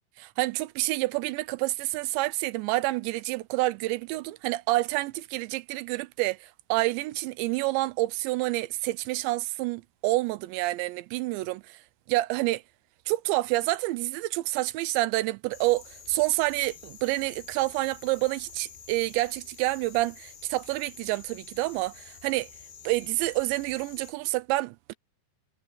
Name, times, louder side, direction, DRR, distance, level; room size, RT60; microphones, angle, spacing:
voice 1, 0.2-11.8 12.1-12.6 13.1-22.5 22.8-24.9, right 19 dB, 80° right, 2.9 m, -28 dB
sound 1, 15.5-24.1, left 7 dB, 65° left, 5.1 m, -49 dB
omnidirectional pair, 5.2 m